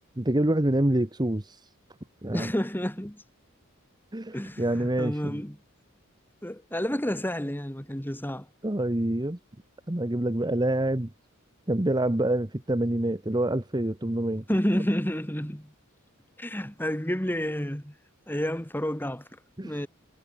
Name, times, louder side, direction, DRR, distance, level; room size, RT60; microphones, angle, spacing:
voice 1, 0.2-1.6 2.2-2.5 4.1-5.4 8.6-9.4 9.9-11.1 11.7-14.4 19.6-19.8, right 1 dB, 20° right, 1.1 m, -26 dB
voice 2, 2.3-3.2 4.3-5.6 6.4-8.5 14.5-15.7 16.4-17.9 18.3-19.2 19.6-19.9, equal, 10° left, 2.3 m, -30 dB
head